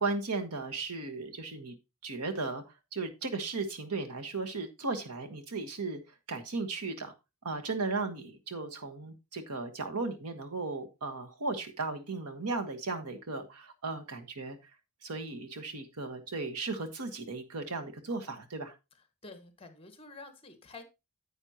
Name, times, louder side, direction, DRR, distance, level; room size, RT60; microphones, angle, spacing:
voice 1, 0.0-1.7 2.0-2.6 2.9-6.0 6.3-7.1 7.4-14.6 15.0-18.7, right 3 dB, 90° right, 1.5 m, -36 dB
voice 2, 19.2-20.8, left 3 dB, 25° left, 1.5 m, -49 dB
9.7 x 8.7 x 2.8 m
head